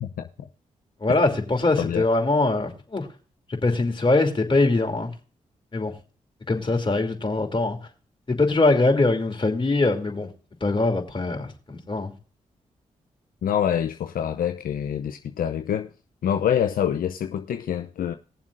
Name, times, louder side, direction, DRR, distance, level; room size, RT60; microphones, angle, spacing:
voice 1, 1.0-3.1 3.5-5.1 5.7-5.9 6.5-7.8 8.3-10.3 10.6-12.1, left 2 dB, 35° left, 2.9 m, -22 dB
voice 2, 13.4-15.9 16.2-18.1, left 9 dB, 75° left, 0.6 m, -26 dB
20.0 x 7.3 x 2.6 m
supercardioid pair, 40°, 15 cm